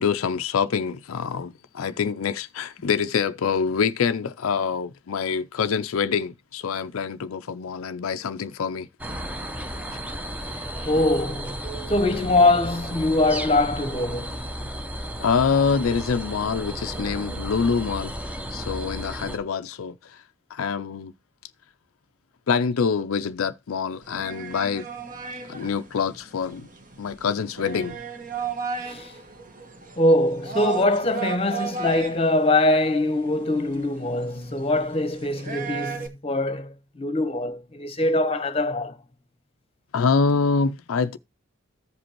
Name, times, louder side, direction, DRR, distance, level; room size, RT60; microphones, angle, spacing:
voice 1, 0.0-8.9 15.2-18.1 18.5-20.2 20.5-21.1 22.5-24.9 25.5-26.7 27.0-28.0 39.9-41.2, left 5 dB, 80° left, 0.5 m, -25 dB
sound 1, 9.0-19.4, equal, 5° right, 0.8 m, -33 dB
voice 2, 10.8-11.6 11.9-14.5 28.8-29.1 30.0-39.0, left 2 dB, 30° left, 1.0 m, -23 dB
sound 2, 24.0-36.1, right 5 dB, 40° right, 1.4 m, -35 dB
14.5 x 5.1 x 3.0 m
head